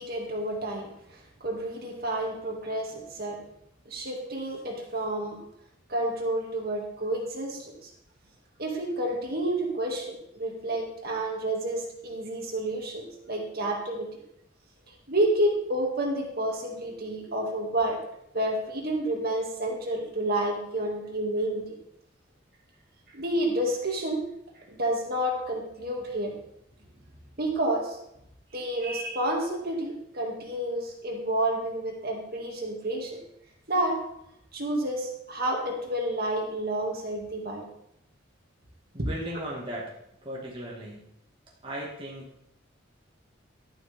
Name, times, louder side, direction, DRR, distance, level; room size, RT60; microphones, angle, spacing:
voice 1, 0.0-3.4 3.9-5.4 5.9-7.9 8.6-14.1 15.1-18.0 18.3-21.7 23.1-24.2 24.7-26.4 27.4-28.0 28.5-33.2 33.7-34.0 34.5-37.7, right 1 dB, 50° right, 0 dB, 2.4 m, -30 dB
voice 2, 38.9-39.9 40.2-41.1 41.6-42.3, equal, 25° right, -4 dB, 1.9 m, -37 dB
12.0 x 11.0 x 3.6 m, 0.78 s
head